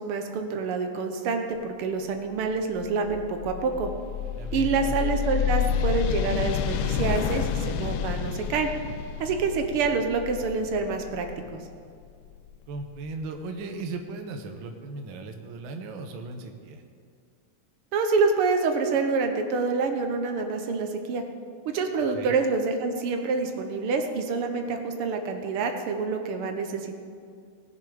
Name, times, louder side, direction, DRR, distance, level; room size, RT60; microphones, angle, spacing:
voice 1, 0.0-3.9 4.5-8.7 9.2-11.3 11.5-11.6 17.9-21.2 21.7-27.0, right 4 dB, 85° right, 5 dB, 1.9 m, -27 dB
sound 1, 2.3-13.1, left 8 dB, 75° left, 1.3 m, -30 dB
voice 2, 4.4-4.9 12.7-16.8 22.1-22.3, right 3 dB, 70° right, 5 dB, 1.6 m, -37 dB
19.0 x 6.9 x 5.0 m, 2.3 s
omnidirectional pair, 2.4 m